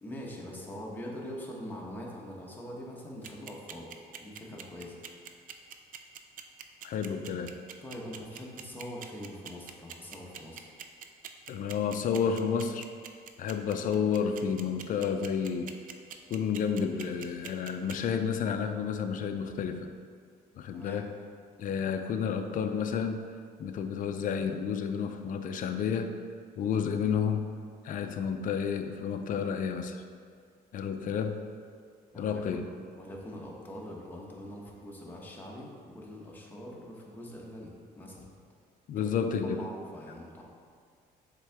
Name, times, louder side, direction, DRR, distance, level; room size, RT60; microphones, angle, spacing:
voice 1, 0.0-3.9 4.2-5.0 7.8-10.7 20.7-21.0 32.1-38.2 39.0-39.1 39.4-40.4, equal, 10° left, -4 dB, 1.1 m, -43 dB
sound 1, 3.2-17.9, right 9 dB, 55° right, 0.4 m, -43 dB
voice 2, 6.8-7.5 11.5-12.9 13.4-15.7 16.3-19.9 20.6-21.1 21.6-23.2 23.6-26.1 26.6-27.5 27.8-30.0 30.7-31.4 32.2-32.6 38.9-39.6, left 7 dB, 50° left, 7 dB, 0.5 m, -30 dB
7.3 x 3.7 x 3.5 m, 2.1 s
cardioid pair, 110°, 17 cm